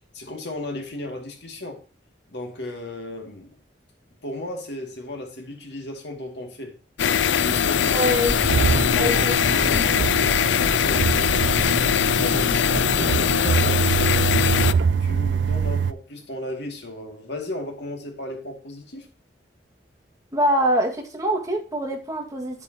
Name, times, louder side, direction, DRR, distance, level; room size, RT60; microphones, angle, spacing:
voice 1, 0.1-1.8 2.3-3.6 4.2-6.7 7.3-8.1 8.8-11.7 12.2-12.6 12.9-19.1, left 1 dB, 65° left, 2.5 m, -35 dB
sound 1, 7.0-14.7, left 8 dB, 90° left, 0.4 m, -21 dB
voice 2, 7.9-8.3 8.9-9.4 9.7-9.9 20.3-22.6, equal, 20° right, 2.0 m, -24 dB
sound 2, 8.2-14.2, equal, ahead, 1.0 m, -36 dB
sound 3, 8.4-15.9, right 6 dB, 85° right, 0.4 m, -25 dB
9.1 x 8.4 x 2.9 m
head